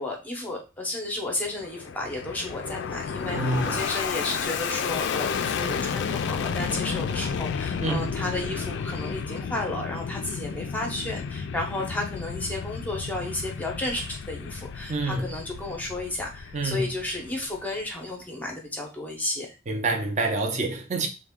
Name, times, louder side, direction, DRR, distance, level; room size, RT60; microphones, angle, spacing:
voice 1, 0.0-19.6, left 2 dB, 10° left, 0.7 m, -33 dB
Fixed-wing aircraft airplane, 1.3-17.9, left 6 dB, 60° left, 0.3 m, -32 dB
voice 2, 3.3-3.8 7.8-8.1 14.9-15.3 16.5-16.9 19.7-21.1, right 2 dB, 35° right, 0.6 m, -27 dB
3.5 x 2.2 x 3.5 m
head